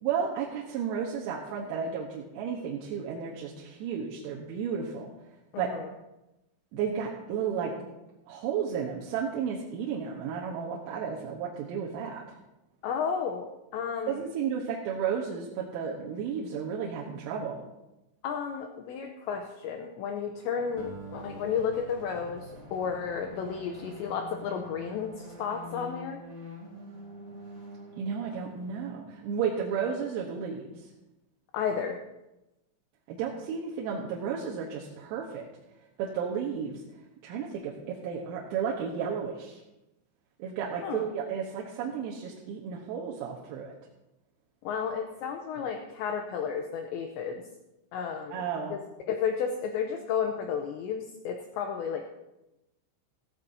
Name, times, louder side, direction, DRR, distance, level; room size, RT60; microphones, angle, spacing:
voice 1, 0.0-5.1 5.6-5.7 6.7-7.7 8.3-12.4 14.1-17.6 28.0-30.9 33.1-35.5 36.0-36.8 37.2-39.6 40.4-43.8 48.3-48.8, right 7 dB, 90° right, -3 dB, 3.9 m, -33 dB
voice 2, 5.5-5.9 12.8-14.2 18.2-26.2 31.5-32.0 40.8-41.1 44.6-47.4 47.9-48.4 48.7-48.8 49.1-52.0, left 7 dB, 85° left, 4 dB, 2.5 m, -32 dB
sound 1, 20.5-29.7, left 1 dB, 35° right, 1.8 m, -47 dB
Acoustic guitar, 20.8-25.2, right 3 dB, 60° left, 4.8 m, -49 dB
15.5 x 15.0 x 2.7 m, 0.97 s
omnidirectional pair, 6.0 m